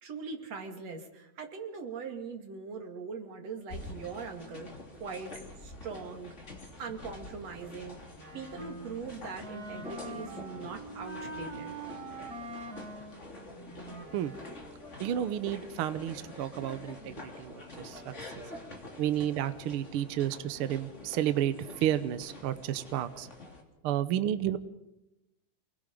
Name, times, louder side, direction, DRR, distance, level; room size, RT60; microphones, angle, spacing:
voice 1, 0.0-4.7 5.0-5.3 5.6-6.3 6.8-8.0 8.3-11.7, right 5 dB, 55° right, 4 dB, 3.4 m, -41 dB
sound 1, 3.7-23.6, left 2 dB, 25° left, 3.1 m, -47 dB
Wind instrument woodwind instrument, 8.2-14.7, right 2 dB, 35° right, 2.1 m, -44 dB
voice 2, 15.0-18.1 19.0-23.3 23.8-24.6, right 11 dB, 75° right, 12 dB, 1.3 m, -31 dB
28.0 x 20.5 x 5.3 m, 0.93 s
omnidirectional pair, 3.6 m